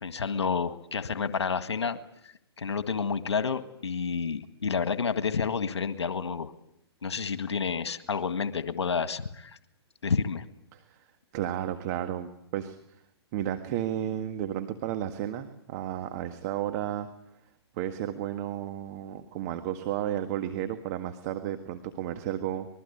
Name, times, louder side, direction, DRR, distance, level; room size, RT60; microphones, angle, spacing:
voice 1, 0.0-2.0 2.2-6.5 7.0-9.6 10.0-10.4, left 5 dB, 85° left, 10 dB, 1.8 m, -30 dB
voice 2, 10.7-11.0 11.3-12.8 13.3-17.1 17.8-22.7, right 11 dB, 40° right, 7 dB, 1.7 m, -33 dB
25.5 x 22.0 x 8.6 m, 0.77 s
hypercardioid pair, 140°, 14 cm